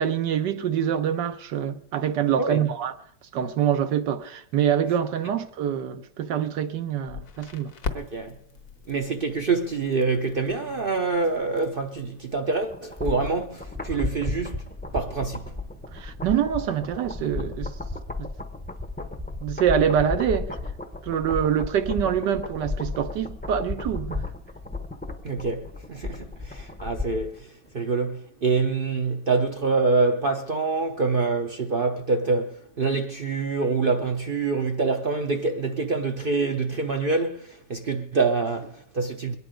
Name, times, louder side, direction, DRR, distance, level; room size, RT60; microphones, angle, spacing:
voice 1, 0.0-2.9 3.3-7.7 15.9-17.7 18.2-18.3 19.4-20.5 21.0-24.2, right 9 dB, 85° right, 1.5 m, -25 dB
Crackle, 7.1-13.6, left 4 dB, 65° left, 1.6 m, -41 dB
voice 2, 7.9-8.4 8.9-14.7 14.9-15.5 25.2-27.5 27.7-39.4, right 4 dB, 55° right, 0.6 m, -26 dB
sound 1, 12.7-27.4 27.7-27.8, left 3 dB, 10° left, 0.5 m, -34 dB
22.0 x 9.3 x 5.0 m
omnidirectional pair, 1.8 m